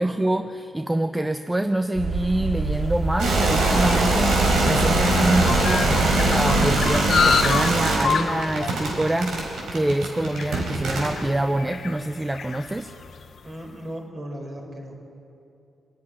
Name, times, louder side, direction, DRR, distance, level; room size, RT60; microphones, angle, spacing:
voice 1, 0.0-4.4 4.7-12.9, right 1 dB, 10° right, 8 dB, 0.6 m, -25 dB
sound 1, 2.0-7.3, right 2 dB, 55° right, 3.4 m, -26 dB
sound 2, 2.9-13.5, left 6 dB, 55° left, 0.9 m, -29 dB
sound 3, 3.2-11.3, right 2 dB, 85° right, 4.3 m, -23 dB
voice 2, 13.4-15.2, equal, 35° right, 1 dB, 4.6 m, -37 dB
25.5 x 10.5 x 9.9 m, 2.7 s
cardioid pair, 110°, 0 cm